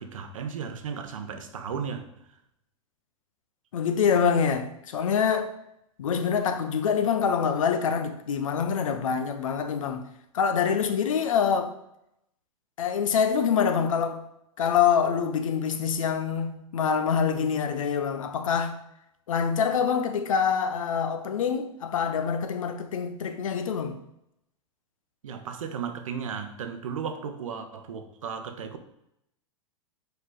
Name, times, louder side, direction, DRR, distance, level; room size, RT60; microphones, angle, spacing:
voice 1, 0.0-2.0 25.2-28.9, right 6 dB, 80° right, 0.9 m, -35 dB
voice 2, 3.7-5.5 6.0-10.1 10.3-11.7 12.8-14.2 14.6-18.8 19.3-24.0, left 7 dB, 80° left, 0.8 m, -25 dB
5.5 x 4.7 x 3.9 m
hypercardioid pair, 110°, 17 cm